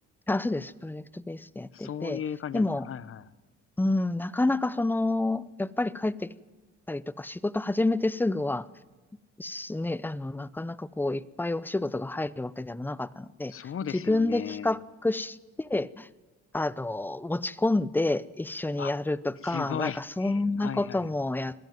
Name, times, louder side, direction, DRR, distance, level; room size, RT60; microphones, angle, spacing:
voice 1, 0.3-2.2 2.5-2.9 3.8-6.3 6.9-8.7 9.4-13.5 13.9-16.1 16.5-21.5, left 2 dB, 5° left, 19 dB, 0.6 m, -29 dB
voice 2, 1.7-3.3 13.5-14.8 18.8-18.9 19.4-21.1, left 8 dB, 45° left, 17 dB, 0.9 m, -36 dB
21.0 x 15.0 x 9.4 m, 1.3 s
cardioid pair, 90°, 30 cm